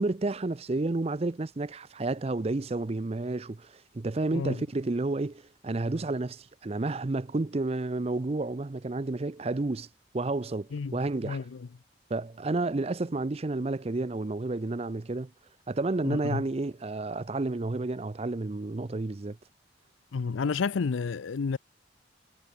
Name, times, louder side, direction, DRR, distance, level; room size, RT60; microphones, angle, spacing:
voice 1, 0.0-9.9 10.1-11.5 12.1-15.3 15.7-19.4, right 2 dB, 30° right, 0.5 m, -31 dB
voice 2, 16.0-16.4 20.1-21.6, left 5 dB, 90° left, 0.5 m, -30 dB
head